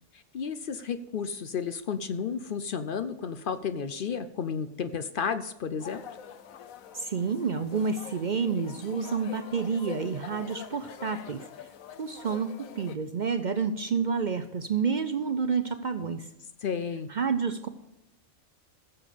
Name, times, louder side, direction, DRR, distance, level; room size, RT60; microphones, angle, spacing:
voice 1, 0.1-6.0 16.6-17.1, left 6 dB, 55° left, 12 dB, 0.6 m, -32 dB
sound 1, 5.8-13.0, left 8 dB, 85° left, 1.2 m, -45 dB
voice 2, 6.9-11.5 12.0-16.3 17.1-17.7, right 5 dB, 55° right, 10 dB, 0.5 m, -29 dB
15.5 x 7.2 x 5.1 m, 0.83 s
omnidirectional pair, 1.4 m